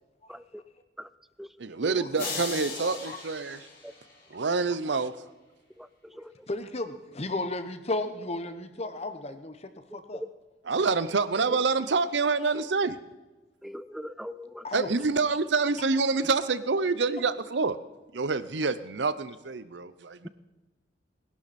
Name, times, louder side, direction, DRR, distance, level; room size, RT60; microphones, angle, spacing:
voice 1, 1.6-3.6 4.3-5.1 10.6-13.0 14.7-17.8 18.1-20.3, right 4 dB, 75° right, 14 dB, 0.7 m, -27 dB
sound 1, 2.2-4.5, left 4 dB, 55° left, 3.8 m, -38 dB
voice 2, 2.8-3.2 4.9-5.1 6.5-10.2 10.8-11.0 12.4-12.5 14.6-14.9, left 2 dB, 35° left, 9 dB, 1.1 m, -34 dB
voice 3, 13.6-14.6, equal, ahead, 15 dB, 0.4 m, -40 dB
20.5 x 11.5 x 4.3 m, 1.1 s
head